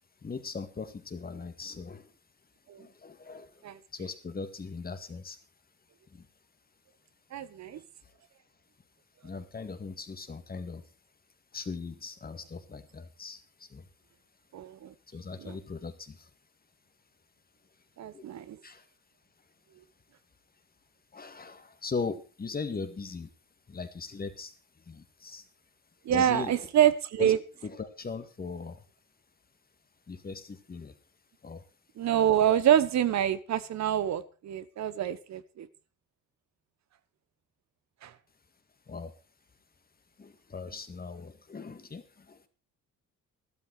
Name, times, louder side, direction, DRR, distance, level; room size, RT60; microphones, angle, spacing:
voice 1, 0.2-2.1 2.8-3.6 3.9-5.4 6.1-6.3 7.7-7.8 9.2-10.8 11.5-13.9 15.1-16.3 18.1-18.3 18.6-18.9 21.1-23.3 23.7-24.5 24.9-25.4 26.1-26.7 27.2-27.3 27.6-28.8 30.1-31.0 31.4-31.6 38.9-39.1 40.2-42.5, left 4 dB, 30° left, 10 dB, 1.9 m, -39 dB
voice 2, 7.3-7.8 14.5-14.9 15.4-15.6 18.0-18.6 26.0-27.4 32.0-35.7 38.0-38.1, right 10 dB, 65° right, 15 dB, 1.0 m, -26 dB
12.5 x 12.0 x 4.7 m, 0.33 s
cardioid pair, 90°, 30 cm